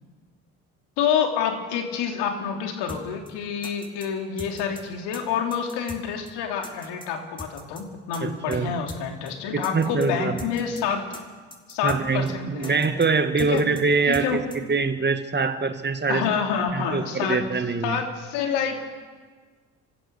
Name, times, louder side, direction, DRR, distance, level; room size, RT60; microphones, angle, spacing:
voice 1, 1.0-11.1 11.7-12.8 13.4-13.6 14.1-14.4 16.1-17.4 17.8-18.8, left 7 dB, 65° left, 3 dB, 3.2 m, -27 dB
sound 1, 2.9-3.0 3.3-3.4 3.6-4.1 4.4-4.8 5.1-5.2 5.5-6.0 6.3-6.4 6.6-7.1 7.4-7.8 8.1-8.2 8.5-8.6 8.9-9.0 9.3-9.4 9.6-10.1 10.4-10.8 11.1-11.2 11.5-12.0 12.3-12.4 12.6-13.1 13.4-13.8 14.1-14.3 14.5-14.6, left 1 dB, 10° left, 4.4 m, -40 dB
voice 2, 8.2-8.8 9.5-10.4 11.8-16.3 16.7-18.0, right 4 dB, 25° right, 9 dB, 2.0 m, -24 dB
28.0 x 15.0 x 6.4 m, 1.5 s
hypercardioid pair, 55°, 43 cm